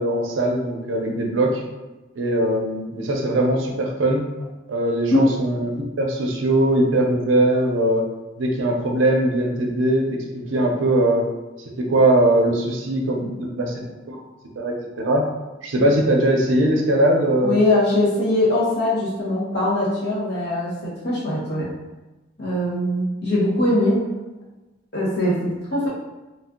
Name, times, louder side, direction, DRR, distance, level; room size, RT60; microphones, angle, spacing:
voice 1, 0.0-1.6 2.2-4.2 4.7-5.7 6.0-8.0 8.4-11.2 11.8-13.8 14.1-14.2 14.6-15.2 15.6-17.6, right 1 dB, 80° right, 1 dB, 0.5 m, -20 dB
voice 2, 17.4-21.7 22.4-24.1 24.9-25.9, left 1 dB, 60° left, -7 dB, 1.1 m, -21 dB
2.5 x 2.0 x 3.6 m, 1.1 s
head